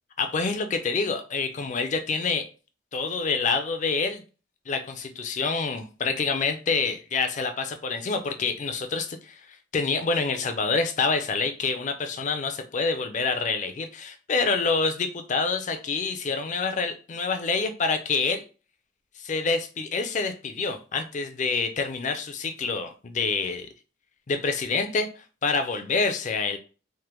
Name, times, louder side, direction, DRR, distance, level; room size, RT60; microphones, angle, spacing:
voice 1, 0.2-2.5 2.9-4.2 4.7-9.4 9.7-18.4 19.2-23.7 24.3-25.1 25.4-26.6, left 4 dB, 40° left, 7 dB, 0.4 m, -27 dB
3.3 x 2.1 x 3.0 m, 0.35 s
head